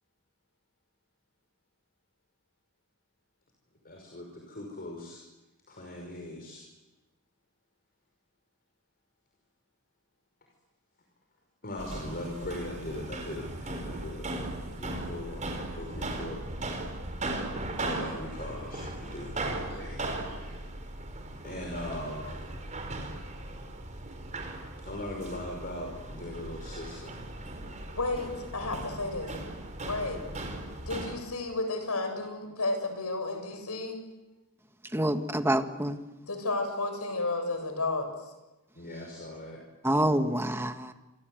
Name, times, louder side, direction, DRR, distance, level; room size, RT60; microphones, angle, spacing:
voice 1, 3.8-5.2 5.7-6.7 11.6-14.4 14.7-16.4 17.8-20.6 21.4-22.4 24.8-27.2 38.7-39.6, left 1 dB, 45° left, 1 dB, 5.4 m, -40 dB
sound 1, 11.8-31.1, right 2 dB, 35° right, 4.9 m, -38 dB
voice 2, 27.9-29.3 29.8-30.3 30.9-34.0 36.3-38.1, left 2 dB, 80° left, 6 dB, 7.3 m, -32 dB
voice 3, 34.9-36.0 39.8-40.9, right 1 dB, 10° right, 7 dB, 1.7 m, -27 dB
28.5 x 25.5 x 8.0 m, 1.1 s
head